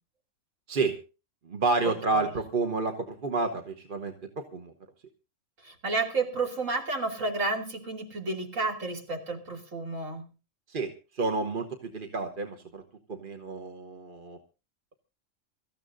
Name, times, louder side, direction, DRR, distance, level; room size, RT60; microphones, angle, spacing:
voice 1, 1.4-4.7 10.7-12.8 13.1-14.4, right 3 dB, 45° right, 5 dB, 1.2 m, -30 dB
voice 2, 5.6-10.2, right 3 dB, 80° right, 1 dB, 3.1 m, -31 dB
25.0 x 14.0 x 2.6 m, 0.32 s
omnidirectional pair, 1.3 m